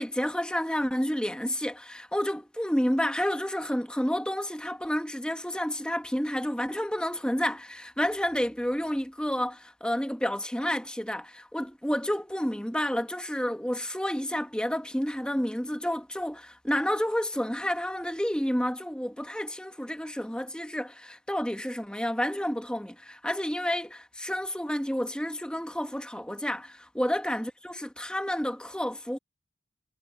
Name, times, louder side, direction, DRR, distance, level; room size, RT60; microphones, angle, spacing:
voice 1, 0.0-29.2, equal, 5° left, 1.1 m, -30 dB
head